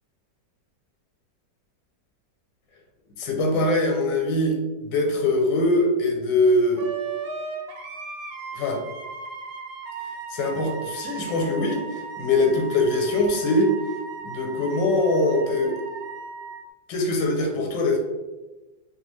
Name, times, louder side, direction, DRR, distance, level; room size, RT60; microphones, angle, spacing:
voice 1, 3.2-4.6 4.8-6.9 8.5-8.8 10.3-13.7 14.2-15.8 16.9-18.0, left 2 dB, 85° left, 2 dB, 1.3 m, -22 dB
Wind instrument woodwind instrument, 6.8-16.6, right 5 dB, 65° right, 1.0 m, -36 dB
3.2 x 2.4 x 3.0 m, 1.1 s
omnidirectional pair, 1.9 m